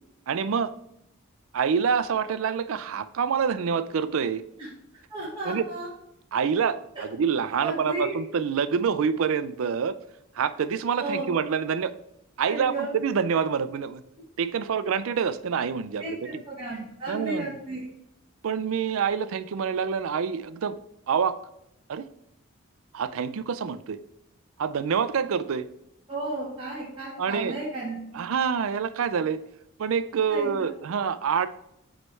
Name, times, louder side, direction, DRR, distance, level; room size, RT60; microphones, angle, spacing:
voice 1, 0.3-0.7 1.5-4.4 5.4-5.7 6.3-9.9 10.3-11.9 12.4-14.0 14.4-16.4 17.1-17.5 18.4-20.8 21.1-21.4 21.9-22.1 22.9-24.0 24.6-25.7 27.2-27.6 28.1-29.4 29.8-31.5, right 6 dB, 70° right, 13 dB, 0.4 m, -26 dB
voice 2, 5.1-5.9 7.6-8.1 11.0-11.3 12.4-12.9 16.0-17.8 26.1-28.2 30.3-30.7, right 2 dB, 25° right, -8 dB, 1.3 m, -33 dB
7.9 x 3.2 x 4.2 m, 0.80 s
head